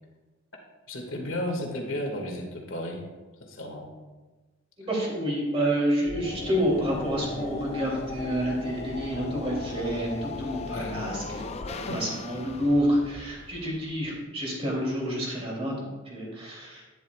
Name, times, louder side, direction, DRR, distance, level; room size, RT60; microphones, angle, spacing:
voice 1, 0.9-3.0 3.4-3.9 10.7-11.0 11.9-12.0, left 1 dB, 85° left, 1 dB, 2.0 m, -33 dB
voice 2, 4.8-16.8, equal, 30° right, -4 dB, 3.2 m, -28 dB
sound 1, 6.1-14.2, left 3 dB, 30° left, 0.4 m, -38 dB
11.0 x 10.5 x 2.4 m, 1.2 s
head